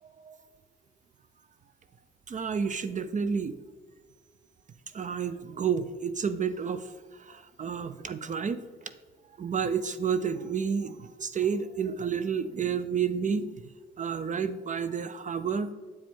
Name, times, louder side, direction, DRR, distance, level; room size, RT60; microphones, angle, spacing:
voice 1, 0.0-0.4 2.3-3.6 4.9-8.9 9.4-13.5 14.0-15.7, right 6 dB, 40° right, 12 dB, 0.4 m, -30 dB
8.3 x 4.9 x 3.7 m, 1.5 s
supercardioid pair, 60°, 20 cm